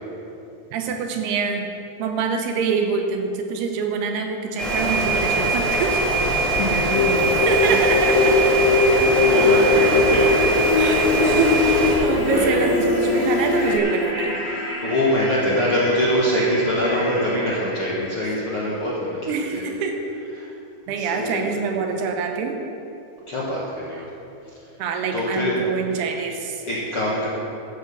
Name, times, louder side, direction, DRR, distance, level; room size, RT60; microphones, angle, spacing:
voice 1, 0.7-1.7 2.0-6.1 7.4-8.4 10.8-14.4 19.3-20.0 20.9-22.6 24.8-26.6, right 5 dB, 85° right, 3 dB, 3.1 m, -25 dB
sound 1, 4.6-11.9, right 3 dB, ahead, 0.9 m, -22 dB
voice 2, 6.2-7.8 8.1-8.2 9.1-10.2 12.3-12.7 14.8-19.6 20.3-20.5 21.0-21.4 23.3-24.0 25.1-25.5 26.7-27.3, left 1 dB, 60° left, -6 dB, 1.4 m, -24 dB
sound 2, 6.2-19.1, equal, 55° right, 4.1 m, -32 dB
sound 3, 6.9-13.8, left 3 dB, 80° left, 2.1 m, -20 dB
14.0 x 7.7 x 5.5 m, 2.9 s
omnidirectional pair, 4.5 m